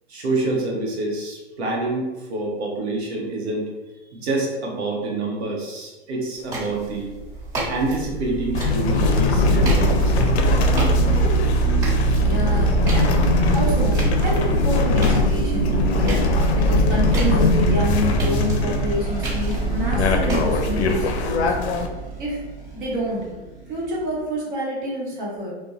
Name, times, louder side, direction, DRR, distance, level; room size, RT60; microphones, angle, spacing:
voice 1, 0.1-3.7 4.1-7.1 7.7-10.4, right 2 dB, 70° right, -2 dB, 0.8 m, -27 dB
sound 1, 6.3-21.2, right 1 dB, 35° right, 1.2 m, -35 dB
sound 2, 6.8-24.2, right 3 dB, 10° right, 0.5 m, -24 dB
sound 3, 8.5-21.9, left 3 dB, 75° left, 0.5 m, -22 dB
voice 2, 12.1-16.2 16.5-21.6 22.2-22.4 22.7-23.2 23.7-25.5, equal, 50° right, -4 dB, 1.1 m, -28 dB
2.6 x 2.2 x 2.3 m, 1.1 s
hypercardioid pair, 130°, 33 cm